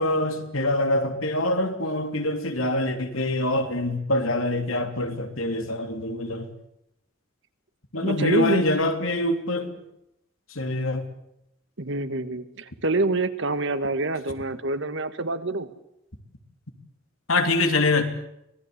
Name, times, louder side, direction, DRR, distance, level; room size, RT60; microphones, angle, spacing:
voice 1, 0.0-6.5 7.9-9.7 10.5-11.0 17.3-18.0, left 2 dB, 90° left, 6 dB, 3.3 m, -24 dB
voice 2, 8.0-8.6 11.8-15.7, right 2 dB, 65° right, 11 dB, 1.8 m, -26 dB
25.0 x 18.5 x 8.2 m, 0.82 s
head